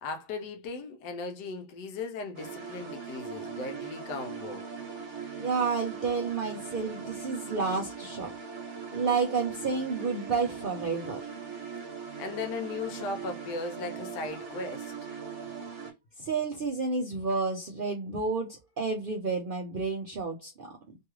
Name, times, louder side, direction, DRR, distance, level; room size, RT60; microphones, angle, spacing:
voice 1, 0.0-4.7 12.2-14.9, left 3 dB, 80° left, 1.3 m, -37 dB
sound 1, 2.4-15.9, right 6 dB, 50° right, 1.1 m, -40 dB
voice 2, 5.4-8.3 8.9-11.3 16.2-20.7, right 4 dB, 85° right, 0.4 m, -30 dB
3.2 x 2.3 x 3.0 m
omnidirectional pair, 1.8 m